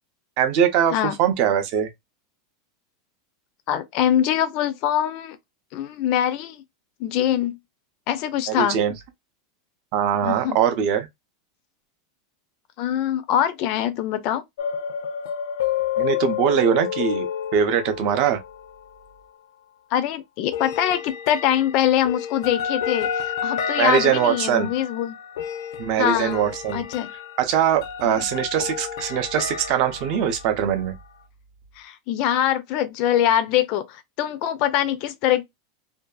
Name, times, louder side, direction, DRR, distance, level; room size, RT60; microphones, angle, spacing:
voice 1, 0.4-1.9 8.6-8.9 9.9-11.1 16.0-17.3 17.5-18.4 23.8-24.7 25.8-26.8 27.4-30.9, right 9 dB, 35° right, 0.5 m, -22 dB
voice 2, 3.7-5.4 5.7-6.6 7.0-7.6 8.1-8.8 10.2-10.6 12.8-14.4 19.9-25.2 26.0-26.5 26.7-27.1 28.0-28.3 31.8-35.4, left 11 dB, 35° left, 0.4 m, -23 dB
sound 1, 14.6-18.8 20.5-31.1, left 8 dB, 85° left, 0.5 m, -30 dB
2.6 x 2.3 x 2.2 m
supercardioid pair, 175°, 2 cm